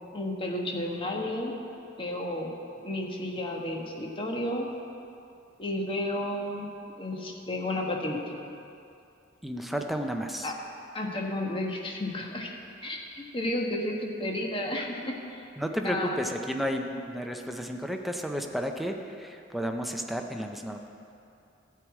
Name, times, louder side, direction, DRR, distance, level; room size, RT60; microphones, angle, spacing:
voice 1, 0.1-1.6 2.0-2.5 2.8-4.7 5.6-6.7 7.0-8.2 10.4-10.5 10.9-12.5 12.8-15.4 15.8-16.1, left 1 dB, 25° left, 0 dB, 1.3 m, -32 dB
voice 2, 9.4-10.5 15.6-20.9, equal, ahead, 3 dB, 0.6 m, -32 dB
13.5 x 4.8 x 8.3 m, 2.6 s
head